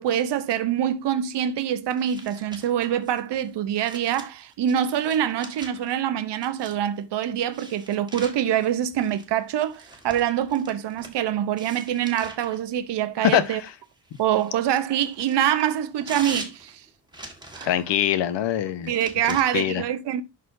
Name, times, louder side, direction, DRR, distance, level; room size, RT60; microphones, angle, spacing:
voice 1, 0.0-13.6 14.2-16.8 17.5-17.7 18.9-20.2, right 10 dB, 75° right, 0.9 m, -25 dB
sound 1, 1.9-6.0 6.4-7.0 7.5-11.2 11.6-12.6 13.3-18.0 18.8-19.4, right 2 dB, 10° right, 1.6 m, -43 dB
voice 2, 13.2-13.6 17.6-18.9 19.3-19.8, left 11 dB, 85° left, 1.0 m, -23 dB
11.5 x 4.2 x 2.6 m
wide cardioid pair, 140°, 42 cm